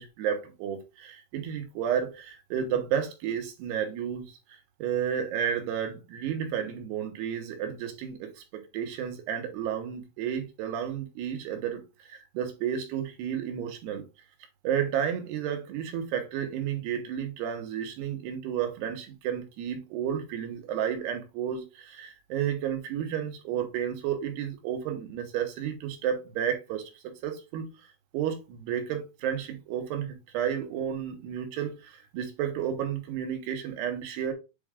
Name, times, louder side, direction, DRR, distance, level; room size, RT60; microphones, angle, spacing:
voice 1, 0.0-4.2 4.8-8.4 8.7-14.0 14.6-26.9 27.2-27.7 28.1-34.3, right 9 dB, 90° right, 3.3 m, -32 dB
7.7 x 3.6 x 3.5 m
omnidirectional pair, 4.6 m